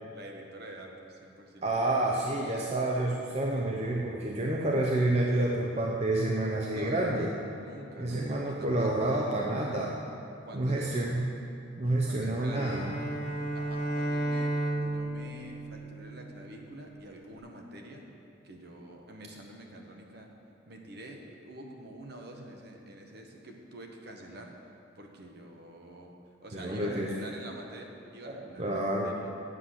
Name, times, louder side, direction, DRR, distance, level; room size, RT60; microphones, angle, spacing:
voice 1, 0.1-1.7 6.7-9.0 10.4-11.1 12.0-12.7 13.5-18.1 18.4-20.3 20.7-24.5 25.0-26.1 26.4-29.3, right 1 dB, 55° right, 2 dB, 1.1 m, -47 dB
voice 2, 1.6-7.3 8.0-10.0 10.5-11.3 11.8-12.8 26.5-27.1 28.3-29.2, right 1 dB, 35° right, -1 dB, 0.6 m, -29 dB
Bowed string instrument, 12.5-16.7, right 1 dB, 50° left, 1.2 m, -33 dB
8.2 x 7.6 x 5.8 m, 2.7 s
head